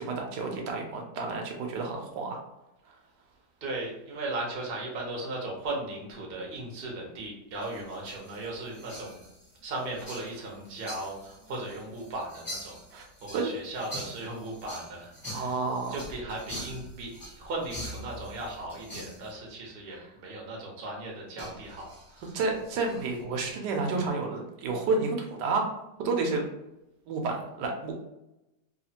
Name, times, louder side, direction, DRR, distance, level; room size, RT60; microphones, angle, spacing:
voice 1, 0.0-2.4 2.9-3.0 12.9-13.0 13.3-13.5 15.3-16.0 19.9-20.1 22.3-25.7 26.0-26.4 27.1-28.0, right 3 dB, 85° right, 2 dB, 1.3 m, -30 dB
voice 2, 3.6-9.2 9.6-15.5 15.9-22.4, right 2 dB, 50° right, -2 dB, 0.7 m, -37 dB
sound 1, 7.5-19.3 21.4-23.5, equal, 25° left, 0.4 m, -44 dB
3.0 x 2.4 x 2.8 m, 0.90 s
omnidirectional pair, 1.8 m